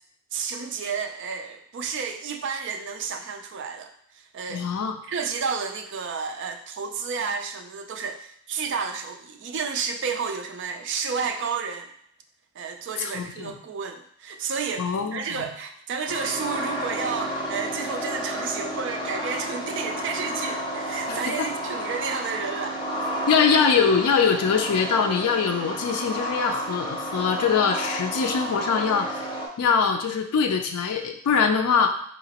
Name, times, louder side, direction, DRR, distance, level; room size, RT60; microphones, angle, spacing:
voice 1, 0.3-4.7 5.0-11.9 12.6-22.8, right 5 dB, 55° right, 5 dB, 0.4 m, -31 dB
voice 2, 4.5-5.0 13.0-13.6 14.8-15.5 21.1-21.5 23.3-29.2 29.6-31.9, left 6 dB, 85° left, 4 dB, 0.4 m, -23 dB
sound 1, 16.1-29.5, equal, 20° left, 0.6 m, -31 dB
4.0 x 2.9 x 2.8 m, 0.67 s
head